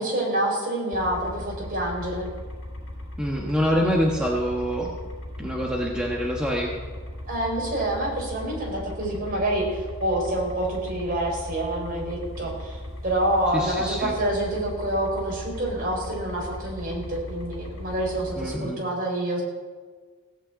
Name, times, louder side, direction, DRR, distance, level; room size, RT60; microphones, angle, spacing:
voice 1, 0.0-2.3 7.3-12.8 13.0-19.4, right 1 dB, 40° right, -1 dB, 4.7 m, -27 dB
sound 1, 0.9-18.6, left 1 dB, 65° left, 4.2 m, -38 dB
voice 2, 3.2-4.9 5.4-6.7 13.5-14.1 18.4-18.8, equal, 5° right, -2 dB, 1.2 m, -25 dB
16.5 x 6.4 x 8.7 m, 1.4 s
head